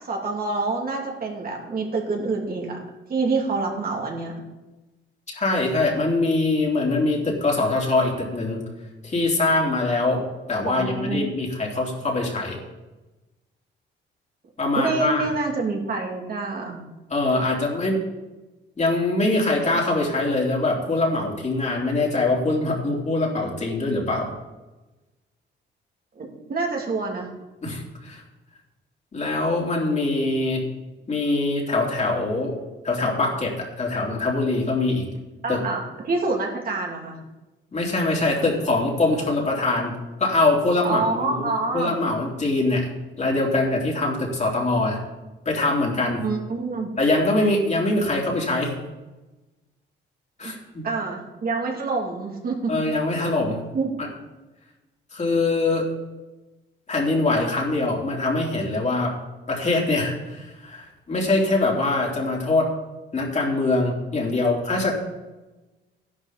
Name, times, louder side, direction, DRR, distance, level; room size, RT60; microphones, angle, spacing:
voice 1, 0.1-2.8 3.1-4.3 10.7-11.2 14.7-16.8 26.2-27.3 35.4-37.2 40.8-42.0 46.2-46.9 50.4-50.6 50.8-52.7 53.2-53.5 53.7-53.9, right 3 dB, 50° right, 0 dB, 2.8 m, -27 dB
voice 2, 5.4-8.6 9.0-10.2 10.5-12.6 14.6-15.3 17.1-18.0 18.8-24.3 27.6-28.2 29.1-30.6 31.1-32.6 32.8-35.0 35.5-35.6 37.7-42.9 43.2-45.0 45.5-46.2 47.0-48.7 50.4-50.9 52.7-53.6 54.0-54.1 55.1-55.9 56.9-59.1 59.5-62.7 63.1-64.9, left 2 dB, 35° left, -2 dB, 3.5 m, -23 dB
12.5 x 11.5 x 4.2 m, 1.1 s
cardioid pair, 90°, 20 cm